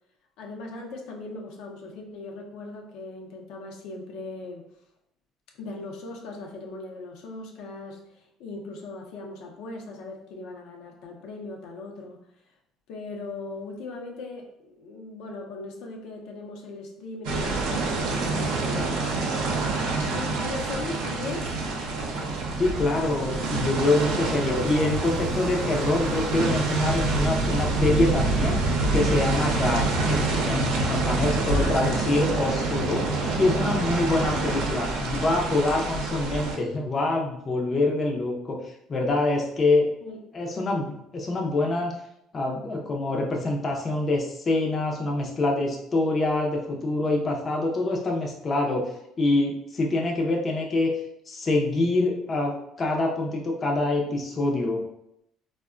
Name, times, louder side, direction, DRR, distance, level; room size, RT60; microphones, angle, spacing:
voice 1, 0.4-4.7 5.6-12.2 12.9-19.2 20.1-21.5 28.1-28.2 29.5-29.7 31.4-31.9 40.0-40.2, left 3 dB, 75° left, 1 dB, 0.5 m, -39 dB
sound 1, 17.2-36.6, right 3 dB, 90° right, 0.6 m, -27 dB
Thunder / Bicycle, 18.1-36.6, right 1 dB, 50° right, 0.6 m, -36 dB
voice 2, 22.6-33.1 33.4-39.9 40.3-41.9 42.3-50.9 51.3-54.8, left 2 dB, 25° left, 0 dB, 0.4 m, -25 dB
3.5 x 2.1 x 2.4 m, 0.78 s
cardioid pair, 145°, 0 cm